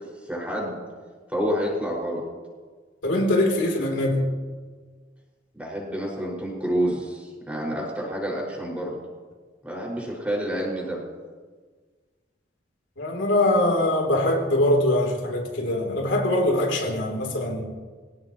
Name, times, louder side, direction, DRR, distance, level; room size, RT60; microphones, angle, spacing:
voice 1, 0.2-0.8 1.3-2.2 5.5-9.0 9.6-11.0, equal, 5° right, -4 dB, 6.1 m, -28 dB
voice 2, 3.0-4.2 13.0-17.6, left 1 dB, 85° left, 0 dB, 3.7 m, -22 dB
26.0 x 17.0 x 3.2 m, 1.5 s
head